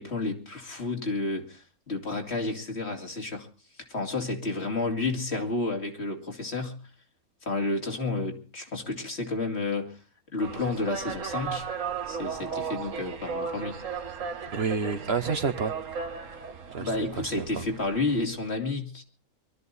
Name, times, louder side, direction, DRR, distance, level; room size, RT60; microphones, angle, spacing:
voice 1, 0.0-3.5 3.9-6.8 7.5-10.0 10.3-11.7 12.1-13.8 16.8-19.0, left 3 dB, 50° left, 2.6 m, -31 dB
sound 1, 10.4-18.3, right 6 dB, 65° right, 1.6 m, -36 dB
voice 2, 14.5-15.7 16.7-17.6, right 5 dB, 50° right, 1.1 m, -29 dB
23.5 x 13.0 x 4.1 m
omnidirectional pair, 1.4 m